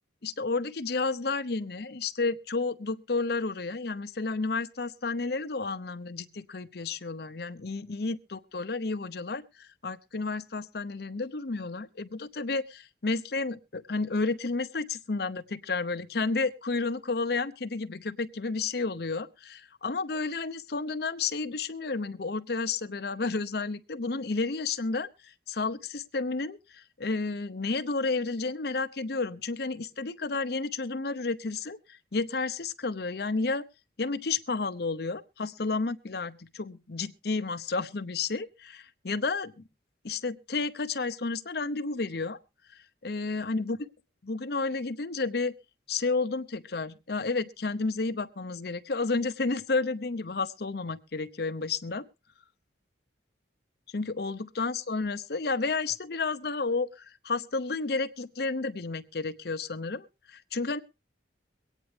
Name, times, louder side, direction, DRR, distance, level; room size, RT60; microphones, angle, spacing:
voice 1, 0.2-33.6 34.0-39.5 40.0-42.4 43.0-43.8 44.2-45.5 45.9-52.1 53.9-60.8, left 3 dB, 60° left, 11 dB, 0.8 m, -31 dB
23.0 x 9.1 x 3.3 m, 0.30 s
head